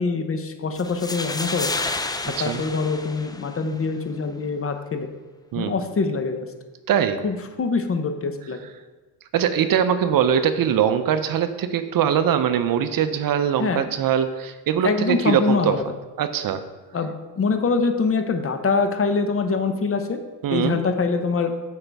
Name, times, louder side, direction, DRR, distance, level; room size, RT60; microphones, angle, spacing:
voice 1, 0.0-1.7 2.2-5.1 5.5-6.5 7.2-8.6 13.6-13.8 14.8-15.8 16.9-20.2 20.5-21.5, left 4 dB, 30° left, 7 dB, 0.7 m, -24 dB
sound 1, 0.8-3.8, left 3 dB, 10° left, 0.4 m, -30 dB
voice 2, 6.9-7.2 9.3-15.7 16.2-16.6 20.4-20.8, right 9 dB, 55° right, 10 dB, 0.6 m, -22 dB
7.9 x 4.9 x 3.4 m, 1.2 s
supercardioid pair, 75°, 42 cm